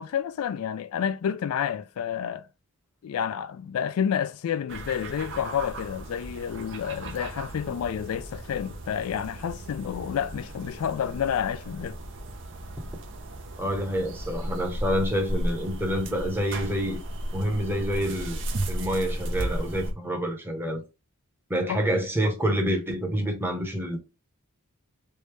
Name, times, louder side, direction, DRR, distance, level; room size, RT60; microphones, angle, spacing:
voice 1, 0.0-2.5 3.0-12.0 21.7-21.9, left 8 dB, 70° left, 0.3 m, -29 dB
sound 1, 4.7-19.9, right 1 dB, 55° right, 0.7 m, -35 dB
voice 2, 13.6-17.0 17.3-18.4 18.7-20.8 21.5-24.0, equal, 10° right, 0.9 m, -27 dB
3.2 x 2.7 x 3.2 m
head